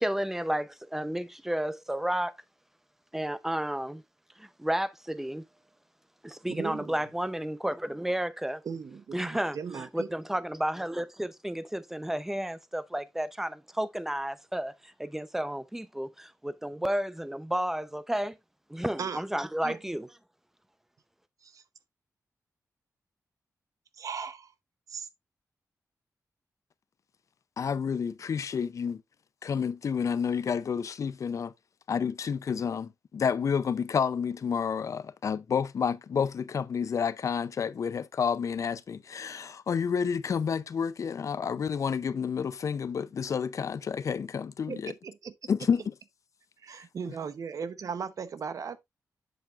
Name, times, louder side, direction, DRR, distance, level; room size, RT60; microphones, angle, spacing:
voice 1, 0.0-2.4 3.1-4.0 4.4-5.4 6.2-8.6 9.1-18.4 18.7-20.1, right 1 dB, 5° right, 0.7 m, -32 dB
voice 2, 6.5-7.0 8.6-10.1 19.0-19.2 19.6-19.8 21.4-21.6 24.0-24.5 24.9-25.1 44.7-45.5 46.6-48.8, right 6 dB, 65° right, 0.8 m, -37 dB
voice 3, 27.6-29.0 29.4-31.5 31.9-44.9 45.5-45.8, left 6 dB, 60° left, 0.5 m, -30 dB
8.0 x 7.4 x 2.4 m
wide cardioid pair, 120°, 6 cm